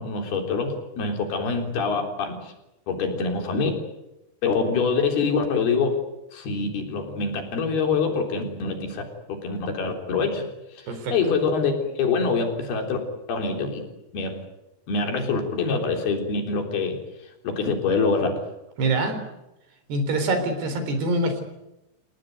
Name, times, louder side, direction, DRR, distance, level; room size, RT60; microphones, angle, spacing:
voice 1, 0.0-2.5 2.9-3.7 4.4-6.0 6.3-9.0 9.3-10.5 10.8-13.0 13.3-13.8 14.1-14.4 14.9-17.0 17.4-18.4, left 4 dB, 75° left, 4 dB, 5.7 m, -25 dB
voice 2, 18.8-19.2 19.9-21.4, right 2 dB, 85° right, 8 dB, 6.1 m, -24 dB
29.0 x 18.0 x 9.3 m, 0.92 s
omnidirectional pair, 4.6 m